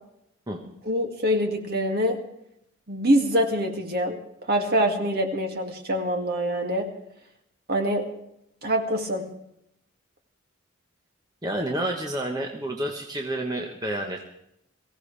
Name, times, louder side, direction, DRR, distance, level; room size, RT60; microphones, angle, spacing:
voice 1, 0.9-2.2 2.9-4.2 4.5-6.9 7.7-8.0 8.6-9.2, equal, 50° right, 2 dB, 2.3 m, -24 dB
voice 2, 11.4-14.3, right 1 dB, 20° right, 1 dB, 1.2 m, -29 dB
23.0 x 16.0 x 3.4 m, 0.78 s
head